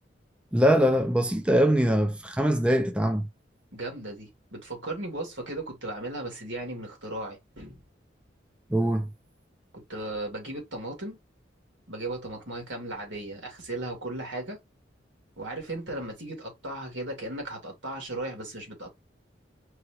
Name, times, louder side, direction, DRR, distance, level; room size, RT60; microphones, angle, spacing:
voice 1, 0.5-3.2 8.7-9.1, equal, 5° right, 0.5 m, -22 dB
voice 2, 3.7-7.8 9.7-11.2 11.9-14.6 15.4-19.0, right 2 dB, 80° right, 2.5 m, -36 dB
4.7 x 2.9 x 3.0 m
head